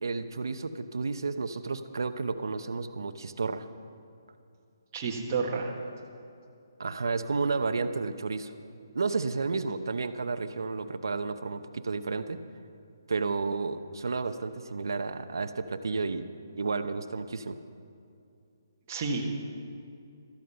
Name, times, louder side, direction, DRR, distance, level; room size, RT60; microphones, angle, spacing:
voice 1, 0.0-3.7 6.8-8.5 8.9-12.4 13.1-16.3 16.6-17.6, right 4 dB, 80° right, 9 dB, 0.8 m, -31 dB
voice 2, 4.9-5.8 18.9-19.2, right 4 dB, 25° right, -2 dB, 1.4 m, -30 dB
13.5 x 13.0 x 5.5 m, 2.5 s
hypercardioid pair, 170°, 2 cm